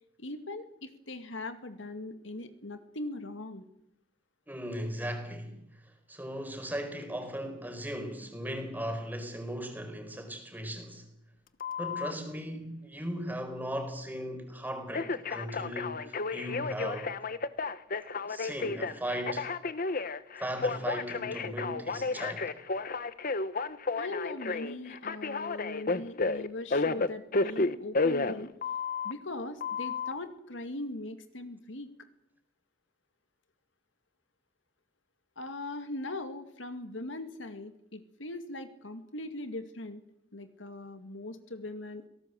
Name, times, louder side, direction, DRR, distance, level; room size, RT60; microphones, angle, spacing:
voice 1, 0.2-3.7 24.0-28.5 29.0-31.9 35.4-40.0 40.3-42.1, left 2 dB, 85° left, 2.3 m, -40 dB
voice 2, 4.5-11.1 11.8-17.2 18.3-19.5 20.4-22.5, equal, 10° right, 4.5 m, -37 dB
Telephone, 11.6-12.1 14.9-29.1 29.6-30.1, left 3 dB, 50° left, 1.1 m, -32 dB
26.0 x 18.0 x 7.8 m
head